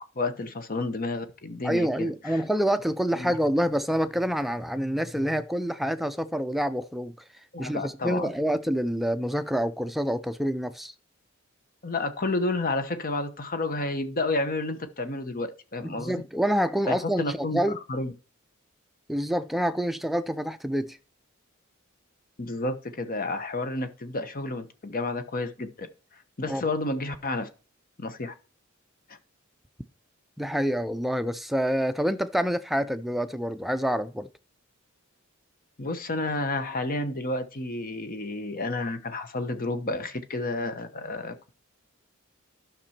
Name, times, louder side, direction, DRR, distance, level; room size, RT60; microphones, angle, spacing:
voice 1, 0.1-2.4 3.1-3.3 7.5-8.3 11.8-16.2 16.9-18.1 22.4-25.9 26.1-27.5 28.0-28.3 29.1-29.2 35.8-41.6, left 2 dB, 45° left, 1.0 m, -31 dB
voice 2, 1.6-7.1 7.6-10.9 15.8-17.8 19.1-21.0 26.5-26.6 30.4-34.3, equal, ahead, 0.5 m, -27 dB
11.5 x 6.0 x 4.4 m
head